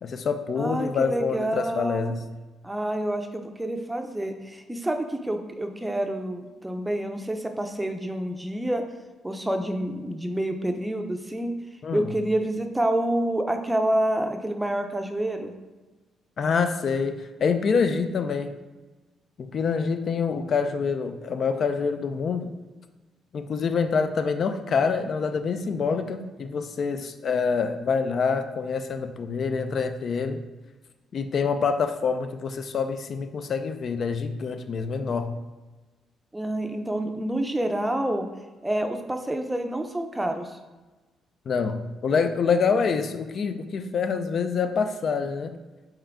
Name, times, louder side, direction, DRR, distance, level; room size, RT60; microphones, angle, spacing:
voice 1, 0.0-2.2 11.8-12.1 16.4-17.1 17.4-18.5 19.4-22.5 23.3-30.4 31.1-35.3 41.5-45.5, left 5 dB, 55° left, 8 dB, 0.4 m, -26 dB
voice 2, 0.5-2.1 2.6-8.8 9.2-11.5 11.9-15.5 36.3-38.3 38.6-40.6, right 1 dB, 10° right, 5 dB, 0.5 m, -28 dB
4.3 x 3.6 x 3.4 m, 1.2 s
cardioid pair, 90°, 0 cm